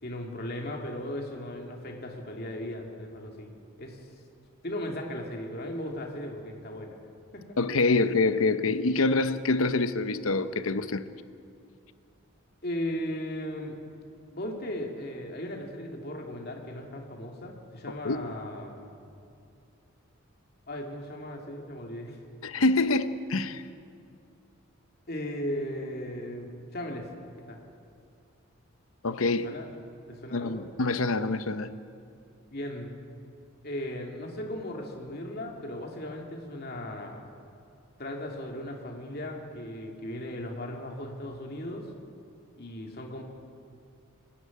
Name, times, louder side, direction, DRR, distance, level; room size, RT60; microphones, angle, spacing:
voice 1, 0.0-3.5 3.8-4.0 4.6-7.0 7.3-7.6 12.6-13.8 14.3-19.0 20.7-22.2 25.1-27.1 27.5-27.6 29.4-29.7 30.1-30.7 32.5-32.9 33.6-37.2 38.0-41.9 42.6-43.2, left 1 dB, 45° left, 2.6 m, -37 dB
voice 2, 7.6-11.0 17.9-18.3 22.4-23.6 29.0-29.5 30.3-31.7, left 3 dB, 75° left, 0.8 m, -26 dB
24.0 x 11.5 x 9.8 m
head